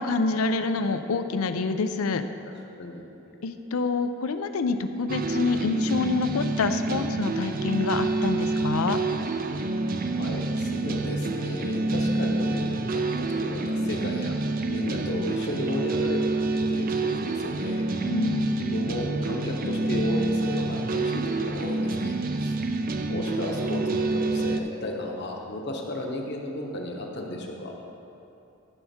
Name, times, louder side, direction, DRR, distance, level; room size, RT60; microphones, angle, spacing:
voice 1, 0.0-2.2 3.4-9.0 18.0-18.6, left 4 dB, 80° left, 9 dB, 0.5 m, -27 dB
sound 1, 5.1-24.6, right 2 dB, 40° right, 0.4 m, -27 dB
voice 2, 10.2-14.4 14.7-17.8 18.5-22.2 22.4-22.5 23.1-27.7, left 1 dB, 50° left, 0 dB, 1.1 m, -34 dB
13.5 x 5.7 x 4.3 m, 2.8 s
head